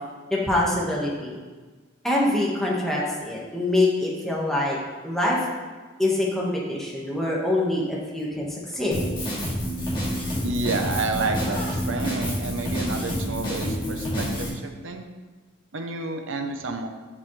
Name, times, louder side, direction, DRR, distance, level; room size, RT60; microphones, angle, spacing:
voice 1, 0.3-1.4 2.0-4.8 5.0-5.4 6.0-8.5 8.7-8.9, left 1 dB, ahead, -5 dB, 1.5 m, -24 dB
Drum kit, 8.9-14.5, equal, 25° left, 2.3 m, -28 dB
voice 2, 10.4-15.1 15.7-16.9, right 3 dB, 75° right, 5 dB, 0.9 m, -30 dB
11.0 x 5.5 x 3.3 m, 1.3 s
head